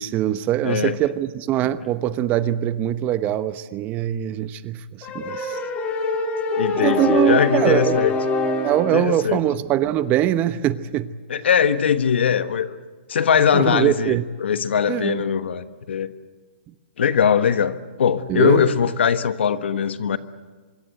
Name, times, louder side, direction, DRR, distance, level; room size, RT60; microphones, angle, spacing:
voice 1, 0.0-5.6 6.8-7.9 8.6-11.2 13.5-14.2 14.9-15.2 18.3-18.8, right 12 dB, 30° right, 13 dB, 0.9 m, -22 dB
voice 2, 0.6-0.9 6.6-8.1 8.9-9.4 11.3-12.8 13.1-16.1 17.0-20.2, left 7 dB, 75° left, 11 dB, 1.3 m, -21 dB
sound 1, 5.0-9.0, left 3 dB, 25° left, 3.1 m, -24 dB
25.0 x 23.5 x 7.9 m, 1.4 s
hypercardioid pair, 140°, 6 cm